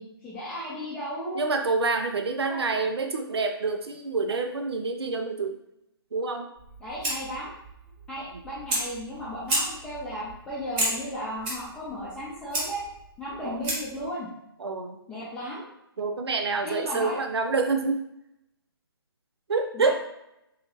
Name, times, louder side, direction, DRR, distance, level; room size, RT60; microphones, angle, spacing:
voice 1, 0.0-1.4 2.5-2.6 6.8-7.5 8.1-12.8 13.2-14.3 15.1-15.7 16.6-17.2 19.7-19.9, equal, 5° left, -9 dB, 0.7 m, -35 dB
voice 2, 1.3-5.6 6.1-6.5 13.4-13.6 14.6-15.0 16.0-18.0 19.5-19.9, right 3 dB, 80° right, 5 dB, 0.5 m, -27 dB
Fire, 6.6-14.0, right 1 dB, 25° right, 1.2 m, -33 dB
3.7 x 2.8 x 3.0 m, 0.82 s
hypercardioid pair, 145°, 13 cm